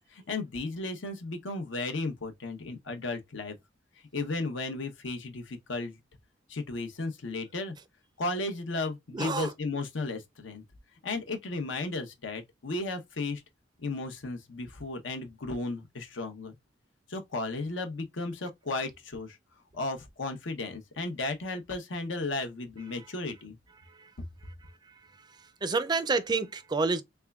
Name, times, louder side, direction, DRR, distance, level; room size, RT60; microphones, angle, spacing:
voice 1, 0.1-3.6 4.1-6.0 6.5-7.8 8.2-10.6 11.0-13.4 13.8-16.5 17.1-19.4 19.7-23.6, left 2 dB, 85° left, 0.8 m, -34 dB
voice 2, 9.1-9.5 25.6-27.0, right 4 dB, 25° right, 0.4 m, -28 dB
3.5 x 3.3 x 2.3 m
head